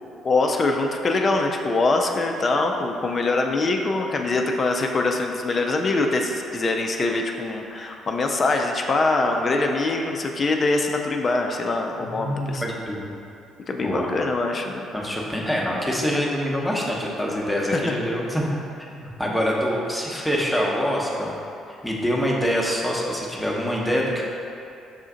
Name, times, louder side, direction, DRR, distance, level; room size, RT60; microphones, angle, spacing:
voice 1, 0.0-12.6 13.7-14.8, left 3 dB, 35° left, 3 dB, 0.4 m, -23 dB
voice 2, 12.1-13.1 13.8-14.1 14.9-18.5 18.9-21.3 21.8-24.2, equal, 5° left, -4 dB, 0.8 m, -25 dB
5.7 x 2.4 x 3.7 m, 2.7 s
figure-of-eight pair, 45°, 0 cm